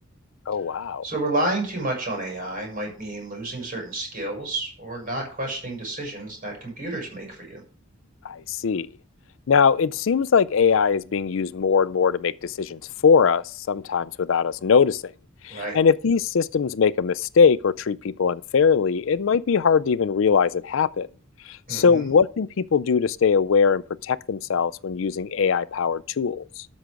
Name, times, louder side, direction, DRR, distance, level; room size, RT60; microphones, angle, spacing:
voice 1, 0.5-1.0 8.2-8.9 9.5-15.0 15.4-21.1 21.5-26.7, left 6 dB, 70° left, 0.4 m, -21 dB
voice 2, 1.0-7.6 15.5-15.8 21.7-22.1, right 2 dB, 45° right, 6.4 m, -30 dB
13.0 x 6.3 x 5.1 m
head